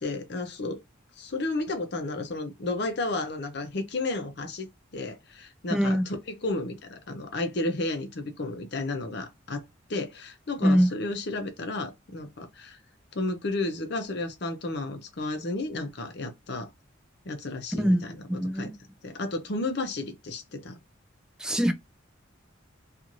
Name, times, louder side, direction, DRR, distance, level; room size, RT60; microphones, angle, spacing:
voice 1, 0.0-0.8 1.2-6.0 6.3-9.6 9.9-12.8 13.1-16.7 17.3-18.1 18.5-18.7 19.0-20.8, left 2 dB, 55° left, 0.6 m, -32 dB
voice 2, 5.7-6.1 10.6-10.9 17.8-18.7 21.4-21.7, equal, 5° right, 0.3 m, -23 dB
2.5 x 2.4 x 2.9 m
head